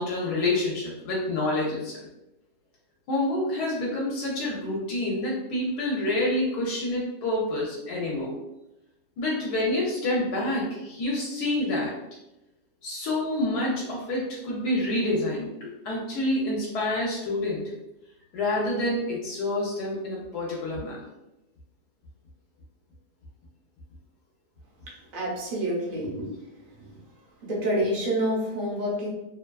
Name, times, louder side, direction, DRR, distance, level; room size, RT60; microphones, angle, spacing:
voice 1, 0.0-2.1 3.1-8.3 9.2-12.0 12.8-17.7 18.3-21.1, left 1 dB, 75° left, -4 dB, 1.1 m, -28 dB
voice 2, 25.1-26.3 26.8-26.9 27.4-29.1, equal, 45° right, -4 dB, 0.6 m, -27 dB
2.8 x 2.2 x 2.2 m, 0.92 s
omnidirectional pair, 1.7 m